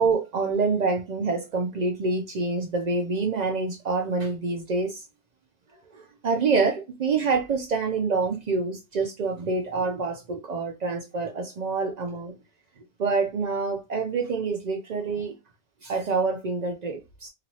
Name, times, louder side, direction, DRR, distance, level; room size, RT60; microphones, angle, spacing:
voice 1, 0.0-5.0 5.9-12.3 13.0-15.3 15.8-17.3, right 4 dB, 80° right, 0.3 m, -26 dB
2.9 x 2.5 x 2.7 m
omnidirectional pair, 1.4 m